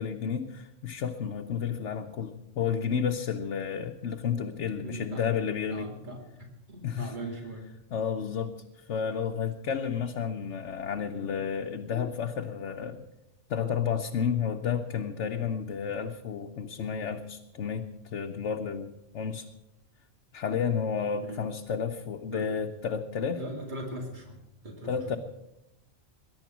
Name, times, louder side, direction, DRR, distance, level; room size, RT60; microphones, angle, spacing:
voice 1, 0.0-5.9 6.8-7.1 7.9-8.5 8.9-13.1 13.5-19.5 20.3-23.4 24.9-25.2, left 7 dB, 80° left, 3 dB, 1.2 m, -31 dB
voice 2, 4.8-5.3 5.7-7.7 21.2-21.4 22.3-22.5 23.2-24.4 24.6-25.2, right 1 dB, 40° right, 1 dB, 2.7 m, -40 dB
21.5 x 11.0 x 6.1 m, 0.91 s
omnidirectional pair, 1.2 m